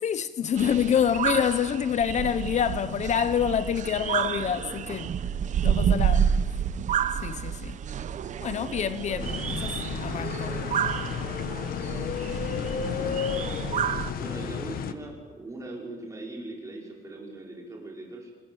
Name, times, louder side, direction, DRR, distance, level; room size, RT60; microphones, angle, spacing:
voice 1, 0.0-5.1 5.6-6.3 7.2-7.8 8.4-9.3 9.6-9.7 10.0-10.6, left 8 dB, 50° left, 0.8 m, -27 dB
sound 1, 0.6-14.1, right 8 dB, 55° right, 1.0 m, -29 dB
sound 2, 9.2-14.9, left 8 dB, 75° left, 1.4 m, -32 dB
voice 2, 12.2-13.4 14.2-18.3, right 2 dB, 20° right, 5.5 m, -41 dB
26.0 x 21.5 x 8.0 m
cardioid pair, 150°, 15 cm